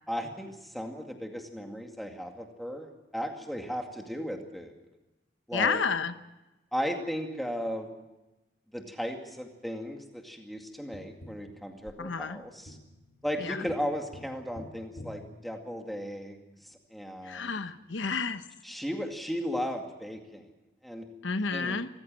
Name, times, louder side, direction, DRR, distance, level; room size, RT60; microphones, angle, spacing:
voice 1, 0.1-4.8 5.5-5.8 6.7-7.9 8.7-12.8 13.2-16.4 16.7-17.6 18.6-20.4 20.8-21.1 21.5-21.8, equal, ahead, 3 dB, 2.2 m, -36 dB
voice 2, 5.5-6.1 12.0-12.4 13.4-13.7 17.2-18.4 21.2-21.9, left 5 dB, 90° left, 11 dB, 1.0 m, -30 dB
Tap, 10.9-16.2 18.8-18.9, left 1 dB, 60° left, 1.7 m, -50 dB
26.5 x 15.0 x 7.6 m, 1.0 s
head